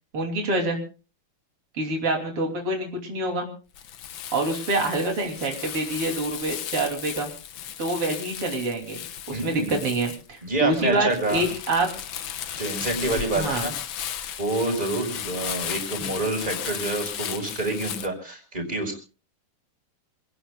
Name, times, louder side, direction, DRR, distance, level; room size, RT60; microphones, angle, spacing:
voice 1, 0.1-0.8 1.8-3.5 4.3-7.3 7.8-9.0 9.3-11.9 13.3-13.7 16.0-16.1, right 2 dB, 85° right, 2 dB, 4.1 m, -26 dB
Crumpling crinkling, 3.7-18.1, left 10 dB, 65° left, 1.7 m, -35 dB
voice 2, 9.3-9.7 10.4-11.4 12.6-13.7 14.4-19.0, right 2 dB, 20° right, 3 dB, 5.1 m, -27 dB
27.0 x 18.5 x 2.3 m, 0.35 s
omnidirectional pair, 2.4 m